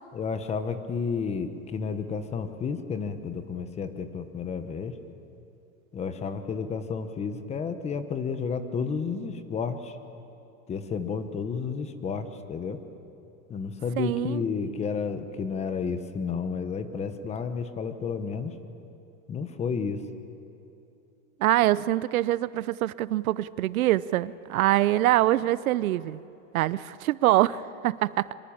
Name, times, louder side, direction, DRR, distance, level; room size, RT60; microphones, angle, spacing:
voice 1, 0.1-5.0 5.9-10.0 10.7-12.8 13.5-18.5 19.3-20.0, left 5 dB, 15° left, 10 dB, 1.0 m, -31 dB
voice 2, 14.0-14.4 21.4-26.2 26.5-28.3, right 15 dB, 80° right, 18 dB, 0.8 m, -24 dB
24.5 x 22.5 x 8.8 m, 2.8 s
supercardioid pair, 155°, 42 cm